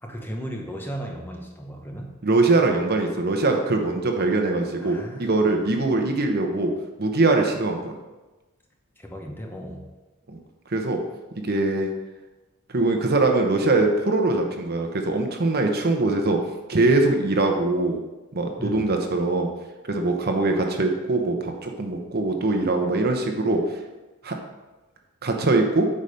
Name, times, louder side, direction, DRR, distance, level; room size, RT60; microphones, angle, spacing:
voice 1, 0.0-2.2 4.8-5.6 9.0-10.0 18.6-18.8, equal, 10° left, 1 dB, 0.9 m, -36 dB
voice 2, 2.2-6.7 7.0-7.9 10.3-10.4 10.7-11.0 11.4-11.9 12.7-16.4 16.7-18.0 18.3-19.5 19.9-23.6 24.2-24.4 25.2-25.8, right 2 dB, 45° right, 3 dB, 1.0 m, -22 dB
8.5 x 5.1 x 5.2 m, 1.1 s
head